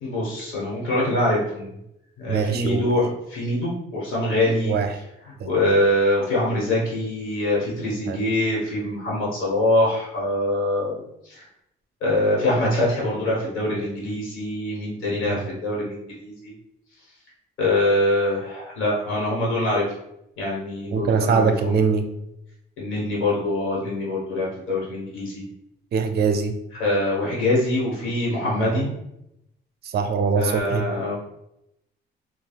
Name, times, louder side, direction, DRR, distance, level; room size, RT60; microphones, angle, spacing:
voice 1, 0.0-1.7 2.2-4.8 5.4-11.4 12.0-16.5 17.6-19.8 20.4-21.8 22.8-25.4 26.8-28.9 30.3-31.1, left 1 dB, 90° left, -5 dB, 1.1 m, -24 dB
voice 2, 2.3-2.9 4.6-4.9 5.4-5.5 8.1-8.3 15.3-15.4 20.9-22.1 25.9-26.5 28.6-28.8 29.9-30.9, right 5 dB, 55° right, 7 dB, 0.4 m, -22 dB
3.3 x 2.2 x 2.3 m, 0.82 s
cardioid pair, 90°, 20 cm